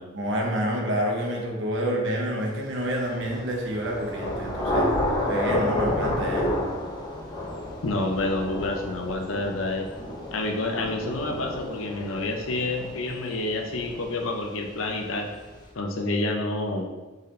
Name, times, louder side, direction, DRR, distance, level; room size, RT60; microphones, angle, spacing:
voice 1, 0.1-4.9 5.3-6.5, equal, 65° right, 0 dB, 1.0 m, -28 dB
Thunder / Rain, 3.0-14.6, left 1 dB, 20° left, 0.8 m, -30 dB
voice 2, 7.8-9.9 10.3-15.3 15.7-16.9, left 2 dB, 80° left, 3 dB, 0.7 m, -28 dB
4.1 x 4.0 x 3.2 m, 1.2 s
head